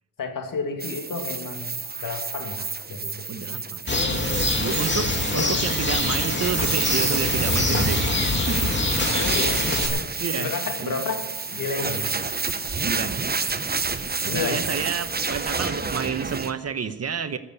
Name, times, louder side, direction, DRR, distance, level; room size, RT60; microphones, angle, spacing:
voice 1, 0.2-3.6 4.7-5.6 9.2-12.1 14.2-14.6, left 4 dB, 65° left, 4 dB, 2.5 m, -32 dB
sound 1, 0.8-16.5, right 4 dB, 25° right, 1.0 m, -29 dB
voice 2, 3.3-4.2 4.6-8.7 10.2-10.5 10.8-11.0 12.8-13.2 14.2-17.4, right 6 dB, 45° right, 11 dB, 1.0 m, -30 dB
Bird, 3.9-9.9, left 2 dB, 30° left, 2.5 m, -25 dB
15.0 x 7.3 x 9.6 m, 1.1 s
cardioid pair, 70°, 35 cm